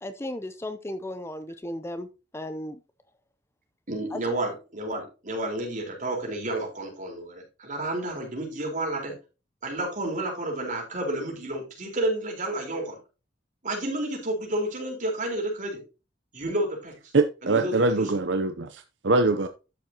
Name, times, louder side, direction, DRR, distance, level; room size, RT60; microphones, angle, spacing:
voice 1, 0.0-2.1 2.3-2.8 4.1-4.2, left 1 dB, 15° left, 0.6 m, -35 dB
voice 2, 3.9-9.1 9.6-13.0 13.6-15.8 16.3-17.0 17.4-18.1, right 1 dB, 45° right, 4.3 m, -30 dB
voice 3, 17.1-18.7 19.0-19.5, right 3 dB, 70° right, 0.7 m, -22 dB
12.0 x 7.2 x 2.9 m
head